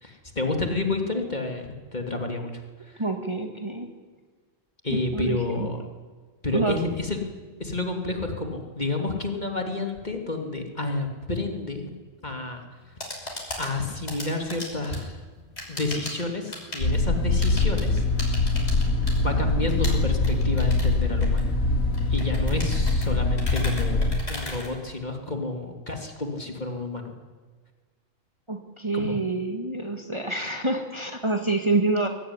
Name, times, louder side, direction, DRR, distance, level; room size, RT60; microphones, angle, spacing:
voice 1, 0.0-2.6 2.9-3.0 4.8-5.8 6.4-7.2 7.6-11.9 12.2-12.6 13.6-15.2 15.7-18.0 18.4-18.6 19.2-21.5 22.1-27.1 28.9-29.2, left 2 dB, 35° left, 3 dB, 3.1 m, -30 dB
voice 2, 3.0-3.9 4.9-5.7 6.5-6.8 28.5-32.1, right 2 dB, 20° right, 4 dB, 1.9 m, -27 dB
sound 1, 12.7-25.4, left 1 dB, 50° left, 6.1 m, -38 dB
sound 2, 16.8-24.2, left 3 dB, 85° left, 3.4 m, -23 dB
24.0 x 17.5 x 9.8 m, 1.5 s
omnidirectional pair, 1.4 m